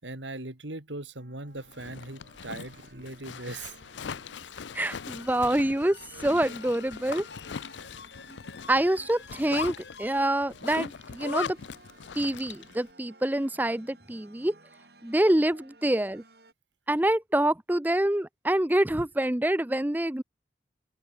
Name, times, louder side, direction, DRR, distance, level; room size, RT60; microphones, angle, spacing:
voice 1, 0.0-3.8, right 2 dB, 90° right, 3.6 m, -39 dB
sound 1, 1.2-16.5, right 2 dB, 60° right, 5.9 m, -57 dB
Zipper (clothing), 1.6-12.8, left 6 dB, 90° left, 0.6 m, -40 dB
voice 2, 4.7-7.3 8.7-11.6 12.1-14.5 15.0-16.2 16.9-20.2, right 1 dB, 10° right, 0.5 m, -26 dB
sound 2, 4.9-10.3, left 4 dB, 70° left, 4.6 m, -48 dB
head